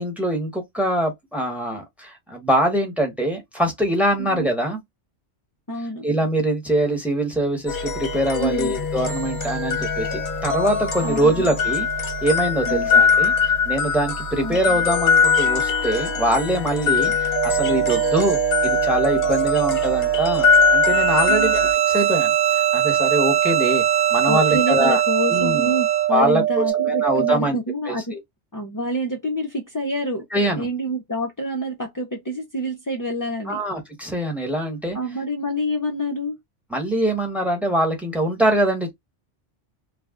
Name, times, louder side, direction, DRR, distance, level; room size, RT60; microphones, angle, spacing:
voice 1, 0.0-4.8 6.0-11.9 12.2-13.3 13.6-21.7 21.9-22.3 22.7-23.8 24.1-25.0 25.3-25.7 26.1-27.6 27.9-28.2 30.3-30.7 33.5-35.0 36.7-38.9, right 1 dB, ahead, 0.9 m, -23 dB
voice 2, 5.7-6.1 8.4-8.8 11.0-11.3 12.6-12.9 14.4-14.6 17.0-17.2 21.3-21.6 24.3-28.1 28.5-30.2 30.6-33.6 34.9-36.4, equal, 30° left, 0.3 m, -27 dB
sound 1, 7.7-21.7, left 6 dB, 50° left, 0.8 m, -22 dB
sound 2, 17.4-27.4, right 13 dB, 60° right, 0.8 m, -22 dB
Bowed string instrument, 20.9-26.1, right 9 dB, 85° right, 0.9 m, -24 dB
2.4 x 2.2 x 3.5 m
omnidirectional pair, 1.2 m